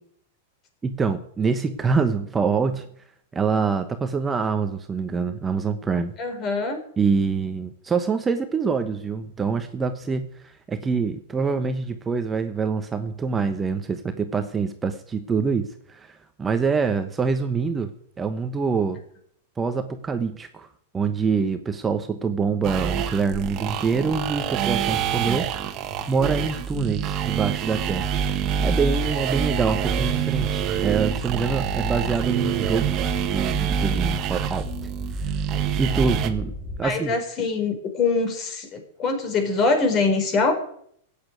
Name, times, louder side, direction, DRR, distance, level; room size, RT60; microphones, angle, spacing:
voice 1, 0.8-2.9 3.3-6.1 7.0-17.9 18.2-19.0 19.6-20.7 20.9-25.8 26.1-34.7 35.1-35.5 35.8-37.2, right 5 dB, 15° right, 8 dB, 1.1 m, -25 dB
voice 2, 6.2-6.8 36.8-40.5, left 4 dB, 35° left, 6 dB, 4.3 m, -23 dB
sound 1, 22.6-36.3, right 8 dB, 35° right, 1.7 m, -26 dB
sound 2, 23.3-36.8, equal, ahead, 4.0 m, -36 dB
14.5 x 8.7 x 9.2 m, 0.66 s
hypercardioid pair, 120°, 0 cm